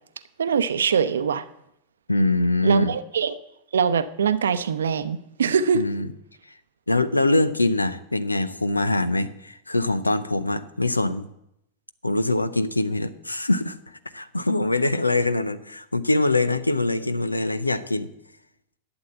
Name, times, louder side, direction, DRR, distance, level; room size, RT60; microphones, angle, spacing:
voice 1, 0.4-1.5 2.6-3.4 3.7-5.8, right 7 dB, 65° right, 13 dB, 0.7 m, -23 dB
voice 2, 2.1-2.9 5.7-6.1 6.9-11.3 12.0-18.1, left 2 dB, 85° left, 14 dB, 0.7 m, -23 dB
12.0 x 8.1 x 7.8 m, 0.80 s
figure-of-eight pair, 90°, 0 cm